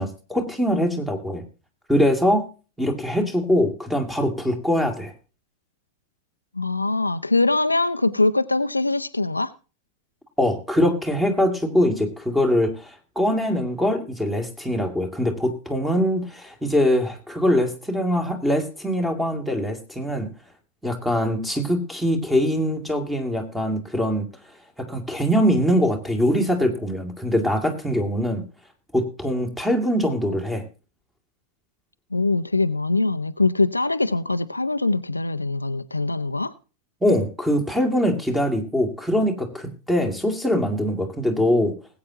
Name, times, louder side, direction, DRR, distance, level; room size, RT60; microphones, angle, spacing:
voice 1, 0.0-1.4 1.9-2.5 2.8-5.1 10.4-20.3 20.8-24.3 24.8-28.4 28.9-30.6 37.0-41.7, equal, 5° right, 2.5 m, -23 dB
voice 2, 6.6-9.5 32.1-36.5, left 2 dB, 85° left, 0.6 m, -22 dB
20.0 x 8.7 x 2.8 m
figure-of-eight pair, 90°, 0 cm